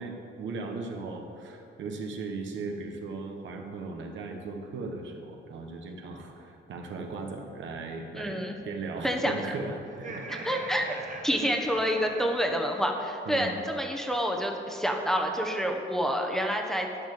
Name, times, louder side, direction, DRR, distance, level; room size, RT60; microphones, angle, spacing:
voice 1, 0.0-10.3 13.2-13.6, right 3 dB, 70° right, 3 dB, 1.3 m, -37 dB
voice 2, 8.1-8.5 9.0-9.3 10.3-10.9 11.2-17.1, equal, ahead, 1 dB, 1.1 m, -28 dB
Laughter, 9.9-13.1, right 3 dB, 40° right, 1.4 m, -42 dB
11.5 x 4.9 x 7.3 m, 2.7 s
cardioid pair, 90°, 20 cm